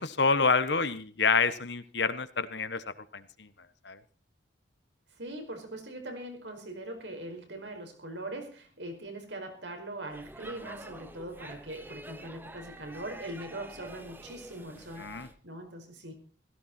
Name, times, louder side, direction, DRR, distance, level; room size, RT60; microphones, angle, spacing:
voice 1, 0.0-2.8 3.1-3.5 3.8-4.0 15.0-15.3, left 4 dB, 70° left, 13 dB, 1.3 m, -27 dB
voice 2, 5.2-16.1, right 1 dB, 75° right, 4 dB, 5.0 m, -41 dB
Speech / Shout / Subway metro underground, 10.1-15.3, right 1 dB, 10° right, 1.0 m, -47 dB
16.5 x 15.5 x 4.5 m, 0.40 s
head